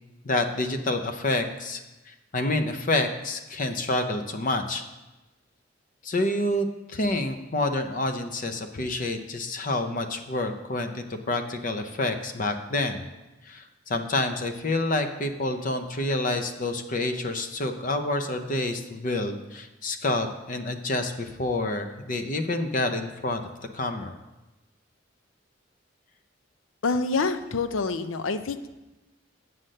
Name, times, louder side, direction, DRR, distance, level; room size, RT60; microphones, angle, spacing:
voice 1, 0.2-1.8 2.1-4.8 6.0-13.0 13.4-23.4 23.7-24.2, left 2 dB, 45° left, 7 dB, 0.7 m, -28 dB
voice 2, 26.8-28.7, left 4 dB, 85° left, 10 dB, 0.6 m, -27 dB
7.8 x 5.8 x 6.5 m, 1.0 s
head